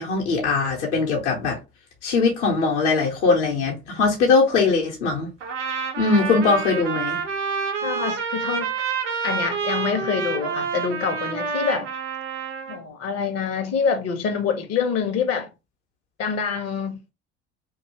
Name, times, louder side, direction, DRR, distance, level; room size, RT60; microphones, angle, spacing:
voice 1, 0.0-1.6 2.0-5.3 6.0-7.2, left 4 dB, 75° left, 0.9 m, -21 dB
Trumpet, 5.4-12.8, right 5 dB, 85° right, 0.6 m, -28 dB
voice 2, 7.8-8.7 9.2-11.9 12.7-15.5 16.2-17.0, left 6 dB, 45° left, 0.7 m, -26 dB
2.6 x 2.3 x 2.9 m
figure-of-eight pair, 60°, 35 cm